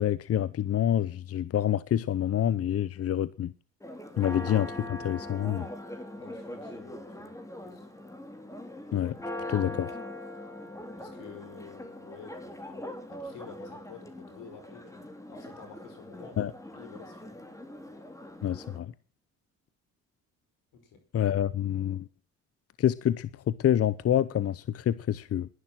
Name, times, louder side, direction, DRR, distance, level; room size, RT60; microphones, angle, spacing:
voice 1, 0.0-3.5 4.2-5.7 8.9-9.1 9.5-9.9 16.4-16.5 18.4-18.9 21.1-22.0 22.8-25.5, left 11 dB, 50° left, 0.8 m, -27 dB
Church bell, 3.8-18.8, left 1 dB, 10° left, 3.6 m, -41 dB
voice 2, 6.2-7.4 7.6-7.9 11.0-17.4 20.7-21.0, left 6 dB, 80° left, 5.2 m, -50 dB
11.5 x 11.5 x 7.6 m
supercardioid pair, 70°, 31 cm